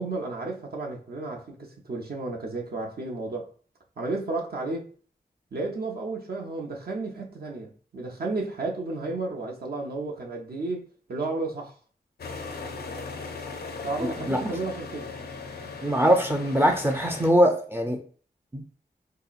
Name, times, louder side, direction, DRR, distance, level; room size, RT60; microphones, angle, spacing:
voice 1, 0.0-3.5 4.0-4.9 5.5-11.7 13.8-15.1, right 3 dB, 60° right, 0.6 m, -32 dB
sound 1, 12.2-17.3, left 4 dB, 65° left, 0.5 m, -38 dB
voice 2, 14.0-14.4 15.8-18.0 18.5-18.6, equal, 15° right, 0.4 m, -22 dB
3.7 x 2.8 x 2.4 m
wide cardioid pair, 95°, 18 cm